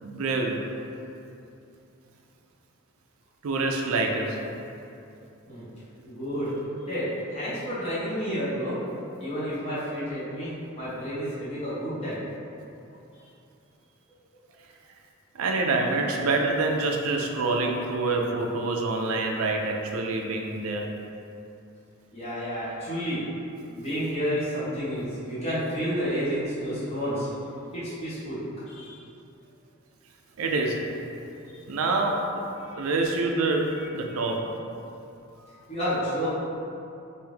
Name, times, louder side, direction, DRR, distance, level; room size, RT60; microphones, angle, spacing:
voice 1, 0.0-0.6 3.4-4.4 15.4-20.9 30.4-30.8 31.7-32.5 32.8-34.5 35.5-35.6, right 3 dB, 80° right, 2 dB, 0.4 m, -26 dB
voice 2, 6.0-6.5 6.9-7.0 7.3-12.2 22.1-23.2 23.7-27.3 27.7-28.4 28.7-29.0 31.5-31.6 32.7-32.9 34.1-34.2 35.7-36.3, equal, 30° left, -12 dB, 1.3 m, -30 dB
3.3 x 2.6 x 3.4 m, 2.7 s
head